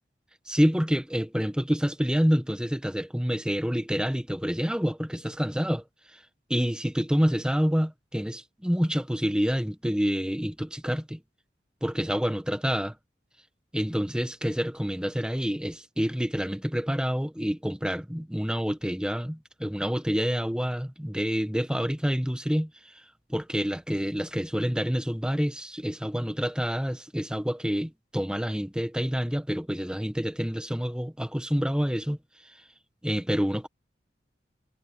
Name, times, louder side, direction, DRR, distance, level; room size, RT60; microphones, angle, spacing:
voice 1, 0.5-5.8 6.1-6.2 6.5-11.2 11.8-13.0 13.7-23.0 23.3-32.2 33.0-33.7, equal, 5° right, 1.4 m, -27 dB
head